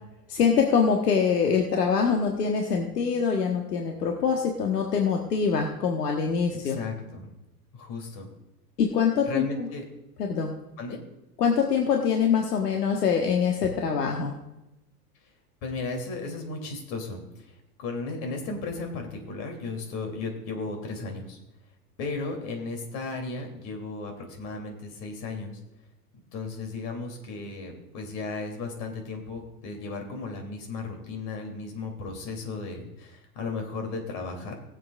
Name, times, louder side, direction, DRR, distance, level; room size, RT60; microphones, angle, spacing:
voice 1, 0.3-6.8 8.8-9.7 10.2-10.5 11.4-14.3, left 6 dB, 80° left, 2 dB, 1.4 m, -24 dB
voice 2, 6.6-7.3 7.7-8.3 9.3-9.8 10.8-11.0 15.6-21.4 22.0-25.6 26.3-34.6, left 3 dB, 55° left, 3 dB, 3.0 m, -35 dB
20.0 x 7.6 x 2.4 m, 0.94 s
hypercardioid pair, 95°, 47 cm